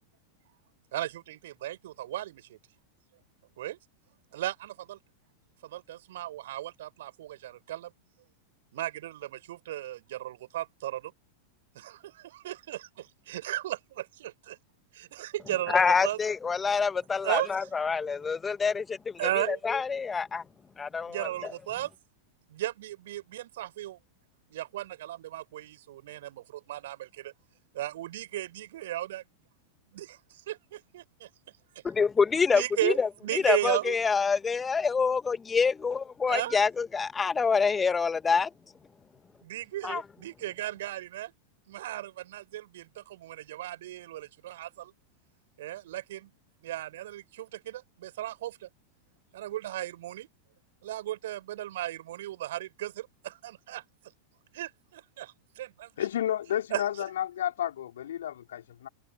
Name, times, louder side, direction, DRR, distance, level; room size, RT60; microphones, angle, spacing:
voice 1, 0.9-2.6 3.6-3.8 4.3-5.0 5.6-7.9 8.7-11.1 11.7-14.6 14.9-16.2 17.2-17.7 19.2-19.6 21.1-21.9 22.5-24.0 24.5-27.3 27.7-29.2 30.0-30.2 31.0-31.3 32.5-33.0 33.2-34.0 36.3-36.6 39.4-41.3 41.7-44.9 45.6-46.3 46.6-48.7 49.3-50.3 50.8-53.8 54.5-55.9 56.7-56.8, right 14 dB, 55° right, 5.2 m, -35 dB
voice 2, 15.7-20.4 20.8-21.5 31.8-38.5 39.8-40.0, left 5 dB, 15° left, 2.1 m, -26 dB
voice 3, 56.0-58.9, left 11 dB, 60° left, 3.7 m, -31 dB
figure-of-eight pair, 90°, 0 cm